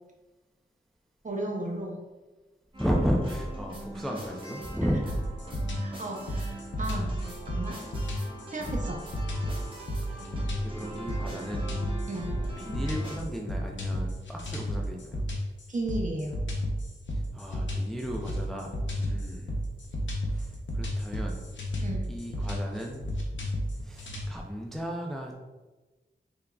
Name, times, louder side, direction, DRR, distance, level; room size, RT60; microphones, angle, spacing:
voice 1, 1.2-2.0 4.8-4.9 5.8-7.2 7.5-7.8 8.5-9.0 12.1-12.3 15.7-16.3 21.8-22.0, right 1 dB, 40° right, 0 dB, 0.7 m, -34 dB
sound 1, 2.7-13.2, right 1 dB, 25° right, 1.0 m, -41 dB
voice 2, 2.8-5.2 10.1-10.3 10.6-11.7 12.6-15.2 17.1-19.5 20.2-21.4 22.1-23.1 23.8-25.4, equal, ahead, 0 dB, 0.4 m, -34 dB
sound 2, 5.1-24.3, equal, 75° left, 0.7 m, -32 dB
3.5 x 3.5 x 2.3 m, 1.2 s
wide cardioid pair, 60°, 19 cm